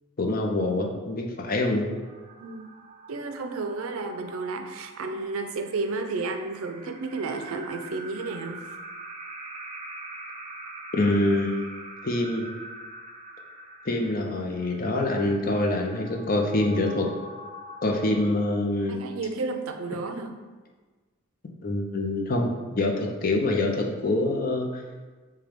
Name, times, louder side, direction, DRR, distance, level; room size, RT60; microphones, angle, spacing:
voice 1, 0.2-1.9 10.9-11.6 12.0-12.4 13.9-17.1 17.8-19.0 21.6-22.5 22.8-24.8, left 2 dB, 45° left, 2 dB, 0.5 m, -25 dB
sound 1, 1.7-19.1, right 2 dB, 30° right, 0.4 m, -44 dB
voice 2, 3.1-8.6 18.9-20.4, right 3 dB, 90° right, 6 dB, 0.5 m, -32 dB
6.8 x 2.3 x 3.5 m, 1.3 s
head